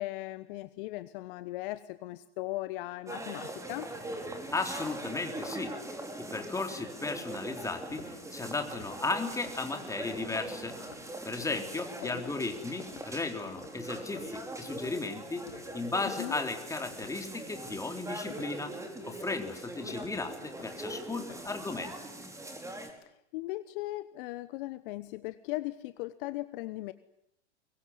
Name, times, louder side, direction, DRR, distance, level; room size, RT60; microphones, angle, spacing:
voice 1, 0.0-3.9 12.0-12.3 16.0-16.3 23.1-26.9, left 18 dB, 50° left, 14 dB, 1.2 m, -38 dB
sound 1, 3.1-22.9, right 1 dB, 10° right, 5.1 m, -42 dB
voice 2, 4.5-5.7 6.2-8.0 8.3-10.8 11.2-15.5 15.7-18.7 19.0-22.0, left 3 dB, 10° left, 5 dB, 3.6 m, -35 dB
sound 2, 7.9-15.9 16.1-16.5 16.9-21.6, left 7 dB, 70° left, 4.2 m, -52 dB
23.0 x 23.0 x 9.6 m, 0.78 s
hypercardioid pair, 105°, 35 cm